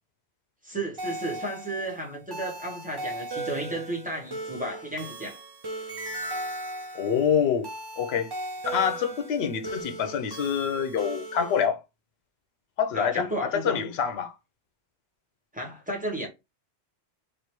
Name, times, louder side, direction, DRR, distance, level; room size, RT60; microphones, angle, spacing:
voice 1, 0.6-5.4 12.9-13.8 15.5-16.3, right 1 dB, 10° right, 1.2 m, -33 dB
sound 1, 1.0-11.6, right 1 dB, 25° right, 0.6 m, -37 dB
voice 2, 6.9-7.7 8.0-8.3 8.7-11.8 12.8-14.3, left 7 dB, 75° left, 0.9 m, -26 dB
3.3 x 2.4 x 4.4 m
omnidirectional pair, 1.1 m